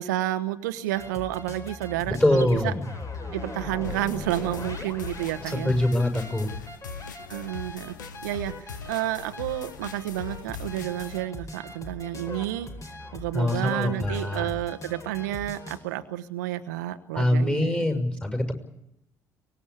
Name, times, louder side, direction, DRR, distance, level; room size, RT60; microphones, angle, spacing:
voice 1, 0.0-2.7 3.3-5.7 7.3-8.0 8.2-12.7 13.1-17.8, right 14 dB, 75° right, 10 dB, 1.0 m, -30 dB
sound 1, 0.9-15.8, left 2 dB, 35° left, 4.8 m, -40 dB
voice 2, 2.1-2.7 5.5-6.5 13.3-14.4 17.1-18.5, left 1 dB, 15° left, 6 dB, 6.3 m, -24 dB
sound 2, 3.8-11.2, left 5 dB, 80° left, 1.2 m, -41 dB
24.0 x 20.5 x 8.5 m, 0.82 s
figure-of-eight pair, 50°, 10 cm